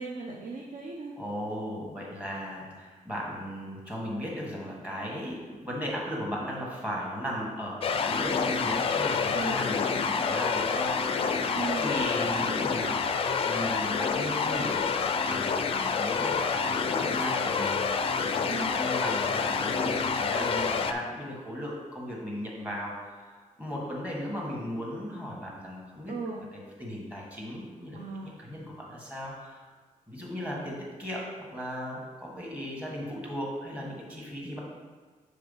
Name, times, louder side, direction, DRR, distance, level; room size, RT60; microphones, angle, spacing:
voice 1, 0.0-1.1 9.3-9.6 11.5-11.9 18.5-18.8 26.1-26.4 27.9-28.3, right 3 dB, 65° right, -2 dB, 0.7 m, -36 dB
voice 2, 1.2-13.2 13.4-14.9 15.2-26.1 26.8-29.6 30.1-31.3 31.5-34.6, equal, 10° right, -3 dB, 1.3 m, -36 dB
sound 1, 7.8-20.9, left 5 dB, 40° left, 0.4 m, -28 dB
6.7 x 3.5 x 5.4 m, 1.4 s
wide cardioid pair, 170°, 14 cm